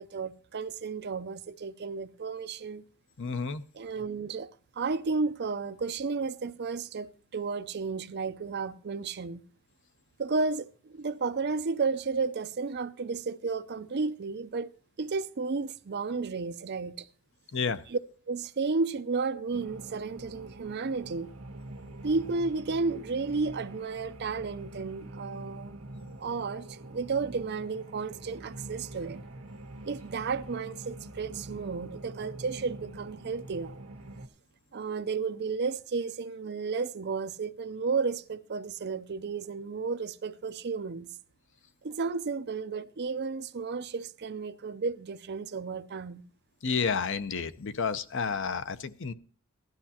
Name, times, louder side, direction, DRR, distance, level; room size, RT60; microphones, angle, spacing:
voice 1, 0.0-2.8 3.8-4.5 4.8-9.4 10.2-14.7 15.0-17.1 17.9-18.0 18.3-21.3 22.0-25.7 26.2-29.2 29.8-33.8 34.7-41.1 41.8-46.2, right 4 dB, 50° right, 0.5 m, -32 dB
voice 2, 3.2-3.6 17.5-17.8 46.6-49.1, left 5 dB, 60° left, 0.7 m, -30 dB
sound 1, 19.5-34.3, right 1 dB, 70° right, 1.4 m, -45 dB
16.5 x 12.5 x 2.8 m
head